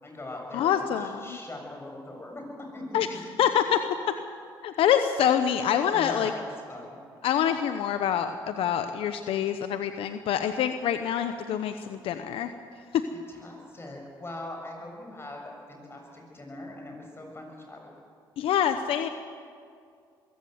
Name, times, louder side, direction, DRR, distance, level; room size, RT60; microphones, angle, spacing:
voice 1, 0.0-3.2 5.9-7.0 13.3-17.9, left 1 dB, 25° left, 1 dB, 7.0 m, -41 dB
voice 2, 0.5-1.4 2.9-3.1 3.4-4.1 4.6-6.3 7.2-12.5 12.9-13.0 18.4-19.1, left 9 dB, 70° left, 8 dB, 0.9 m, -26 dB
22.0 x 15.5 x 8.0 m, 2.3 s
supercardioid pair, 70°, 10 cm